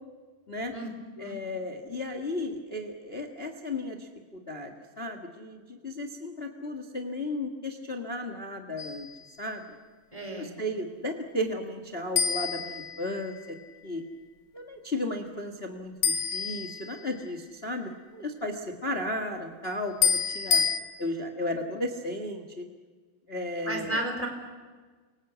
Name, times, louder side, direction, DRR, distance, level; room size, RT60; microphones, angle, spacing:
voice 1, 1.2-9.1 9.4-9.6 10.3-13.6 13.8-14.0 14.5-20.7 21.0-22.6 23.3-24.0, left 1 dB, 75° left, 5 dB, 0.5 m, -34 dB
sound 1, 8.8-9.2 12.2-13.5 16.0-17.3 20.0-20.8, left 6 dB, 60° left, 1.4 m, -28 dB
voice 2, 10.1-10.6 23.6-24.3, right 1 dB, 10° left, 4 dB, 3.3 m, -33 dB
30.0 x 24.5 x 8.1 m, 1.4 s
omnidirectional pair, 4.5 m